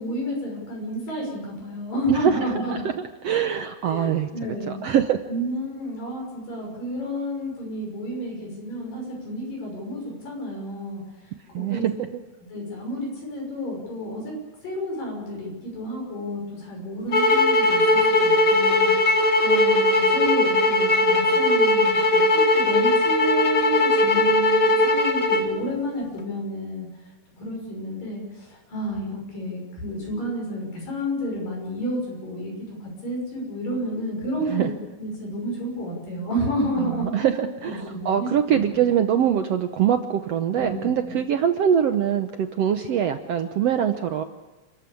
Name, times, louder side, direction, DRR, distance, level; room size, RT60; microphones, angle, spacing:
voice 1, 0.0-2.8 3.9-4.8 5.3-11.0 11.5-11.9 12.5-14.3 14.6-26.9 27.4-34.7 35.0-37.1 37.6-38.6 40.6-40.8, equal, 75° left, -1 dB, 7.8 m, -31 dB
voice 2, 2.1-2.9 3.2-5.2 11.5-12.1 34.5-34.7 36.8-44.2, right 9 dB, 70° right, 7 dB, 1.5 m, -23 dB
sound 1, 17.1-25.5, left 2 dB, 35° left, 2.1 m, -19 dB
29.0 x 14.0 x 8.6 m, 1.1 s
omnidirectional pair, 4.0 m